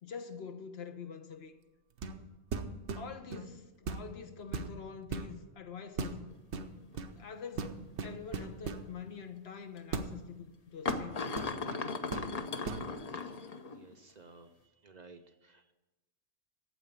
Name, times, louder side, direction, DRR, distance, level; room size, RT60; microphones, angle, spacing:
voice 1, 0.0-1.5 2.9-6.2 7.2-7.7 8.0-11.2, left 6 dB, 70° left, 1.1 m, -45 dB
sound 1, 2.0-2.2 2.5-3.5 3.9-4.1 4.5-5.3 6.0-6.2 6.5-7.1 7.6-8.9 9.9-10.1 10.9-11.8 12.1-12.3 12.6-12.9, right 4 dB, 85° right, 1.1 m, -38 dB
sound 2, 6.3-6.4 6.9-7.2 8.4-8.5 9.8-9.9 10.9-13.9, left 4 dB, 40° left, 0.7 m, -37 dB
voice 2, 13.5-14.5 14.8-15.7, right 3 dB, 45° right, 0.7 m, -56 dB
9.1 x 7.7 x 8.1 m
omnidirectional pair, 1.1 m